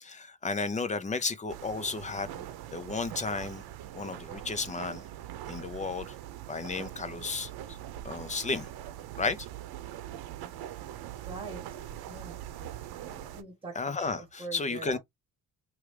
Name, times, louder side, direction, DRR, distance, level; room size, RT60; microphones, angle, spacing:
voice 1, 0.0-2.4 2.7-3.6 3.9-5.0 5.5-6.1 6.5-7.8 8.0-8.7 9.2-9.5 13.7-15.0, left 4 dB, 20° left, 0.6 m, -33 dB
sound 1, 1.5-13.4, right 12 dB, 75° right, 0.8 m, -42 dB
voice 2, 11.3-11.6 12.1-12.4 13.0-15.0, right 4 dB, 15° right, 1.3 m, -43 dB
4.8 x 3.1 x 3.2 m
cardioid pair, 160°, 38 cm